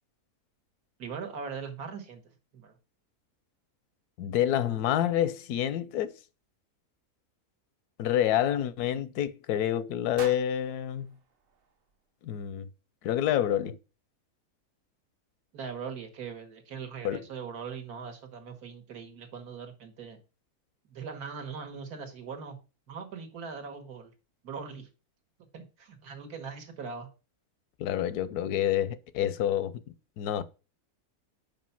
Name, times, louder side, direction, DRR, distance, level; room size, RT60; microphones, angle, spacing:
voice 1, 1.0-2.2 2.5-2.8 15.5-20.2 20.9-22.6 22.9-24.1 24.4-24.9 25.5-27.1, right 6 dB, 85° right, 1.8 m, -40 dB
voice 2, 4.2-6.1 8.0-11.1 12.2-12.7 13.0-13.8 17.0-17.3 27.8-29.8 30.2-30.4, left 11 dB, 90° left, 1.2 m, -28 dB
sound 1, 10.2-12.3, right 7 dB, 55° right, 0.7 m, -47 dB
5.4 x 5.3 x 5.6 m
omnidirectional pair, 1.6 m